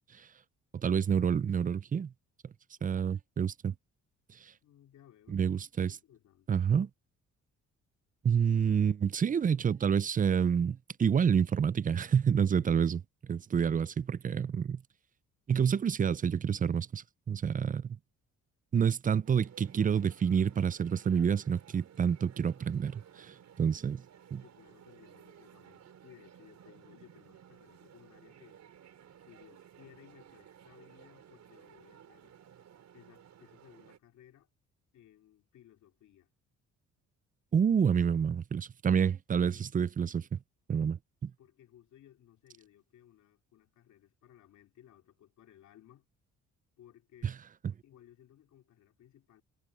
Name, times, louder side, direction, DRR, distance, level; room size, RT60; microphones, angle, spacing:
voice 1, 0.7-2.1 2.8-3.7 4.3-4.5 5.3-6.0 6.5-6.9 8.2-14.8 15.5-18.0 18.7-24.0 24.3-24.4 37.5-40.4 40.7-41.3 47.2-47.3, right 7 dB, 30° right, 0.4 m, -28 dB
voice 2, 4.6-5.5 5.8-6.6 12.6-12.7 24.4-28.6 29.2-32.4 32.9-34.5 34.9-36.3 38.9-39.7 41.4-46.1 46.8-47.4 47.8-49.4, left 11 dB, 70° left, 2.6 m, -60 dB
sound 1, 19.2-34.0, right 9 dB, 65° right, 5.1 m, -57 dB
cardioid pair, 90°, 30 cm